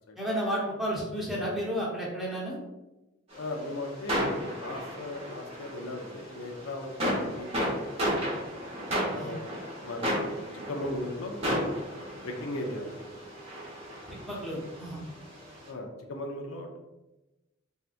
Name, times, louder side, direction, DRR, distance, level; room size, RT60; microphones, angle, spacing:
voice 1, 0.2-2.6 9.2-9.3 14.3-15.0, equal, ahead, -5 dB, 0.8 m, -32 dB
sound 1, 3.3-15.6, equal, 30° right, 0.9 m, -34 dB
voice 2, 3.4-7.8 9.0-9.5 9.8-13.2 15.7-16.8, left 1 dB, 85° left, 2 dB, 0.5 m, -38 dB
3.4 x 2.7 x 2.4 m, 1.0 s
head